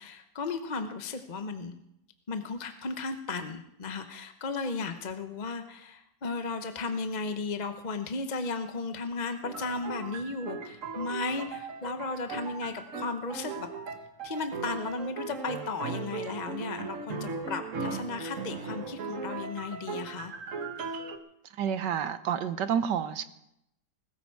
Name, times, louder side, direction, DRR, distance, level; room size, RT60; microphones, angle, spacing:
voice 1, 0.0-1.8 2.3-13.7 14.2-20.3, left 3 dB, 35° left, 8 dB, 0.7 m, -35 dB
sound 1, 9.4-21.2, right 4 dB, 50° right, 1.5 m, -38 dB
voice 2, 21.6-23.2, right 8 dB, 75° right, 12 dB, 1.6 m, -29 dB
20.5 x 14.0 x 4.7 m, 0.81 s
omnidirectional pair, 1.9 m